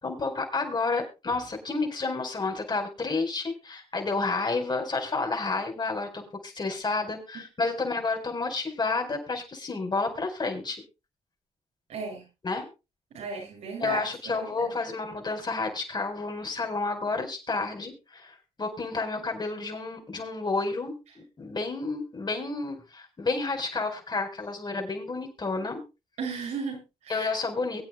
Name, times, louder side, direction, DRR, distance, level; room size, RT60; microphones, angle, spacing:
voice 1, 0.0-10.8 12.4-12.6 13.8-25.8 27.1-27.8, left 3 dB, 40° left, 4 dB, 4.8 m, -30 dB
voice 2, 11.9-12.3 13.1-14.0 14.3-14.8 26.2-27.3, right 5 dB, 85° right, -1 dB, 7.2 m, -35 dB
23.0 x 8.9 x 2.3 m, 0.27 s
supercardioid pair, 60°, 12 cm